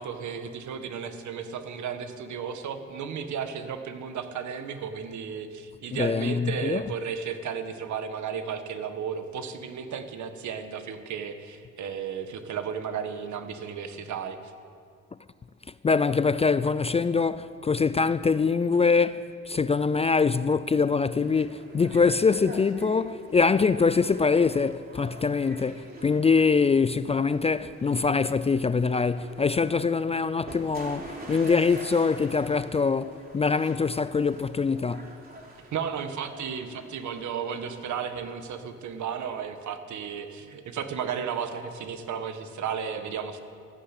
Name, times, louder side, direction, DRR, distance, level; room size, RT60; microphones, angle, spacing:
voice 1, 0.0-14.4 35.7-43.4, right 7 dB, 70° right, 1.5 m, -34 dB
voice 2, 5.9-6.8 15.8-35.1, left 5 dB, 20° left, 0.3 m, -24 dB
sound 1, 21.2-39.3, right 1 dB, 30° right, 3.7 m, -46 dB
14.0 x 12.0 x 8.3 m
cardioid pair, 90°, 30 cm